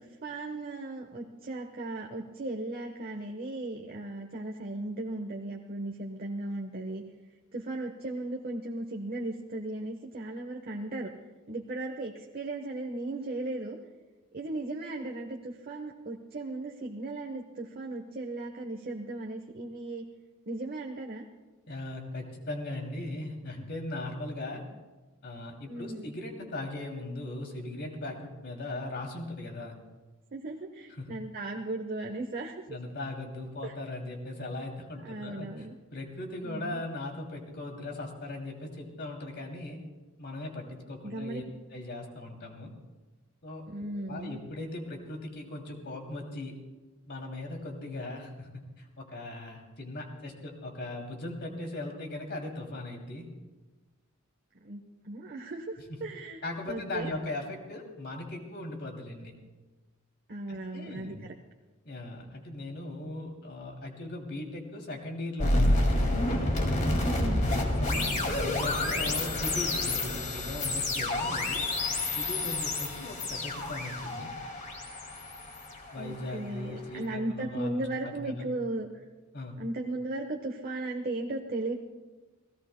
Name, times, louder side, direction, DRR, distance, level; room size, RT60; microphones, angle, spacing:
voice 1, 0.2-7.0 7.5-11.1 11.5-13.8 14.3-20.0 20.5-21.3 25.7-26.1 30.3-32.5 33.6-33.7 35.0-35.7 36.4-36.8 41.0-41.4 43.7-44.4 54.6-56.4 56.7-57.1 60.3-61.1 67.0-67.5 76.0-78.9 79.6-81.7, right 2 dB, 45° right, 2 dB, 1.1 m, -36 dB
voice 2, 21.7-24.6 25.2-29.8 31.0-31.1 32.7-35.7 35.9-39.8 40.2-41.4 41.7-42.7 43.4-43.7 44.1-46.5 47.1-53.3 55.9-56.0 56.4-59.3 60.5-61.2 61.8-66.0 67.4-71.6 72.1-74.3 75.9-78.5 79.3-79.6, left 2 dB, 55° left, 2 dB, 2.7 m, -39 dB
sound 1, 65.4-76.4, left 1 dB, 35° left, 2.2 m, -29 dB
29.0 x 17.5 x 2.2 m, 1.2 s
head